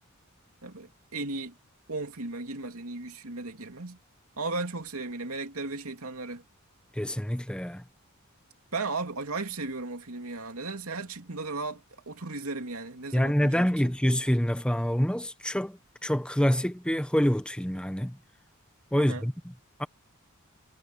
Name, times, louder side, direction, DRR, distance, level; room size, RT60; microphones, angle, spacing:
voice 1, 0.6-1.5 1.9-4.0 4.4-6.4 8.7-13.7 18.9-19.3, right 3 dB, 80° right, 2.9 m, -35 dB
voice 2, 6.9-7.8 13.1-18.2 18.9-19.5 19.8-19.9, equal, 5° left, 1.1 m, -26 dB
head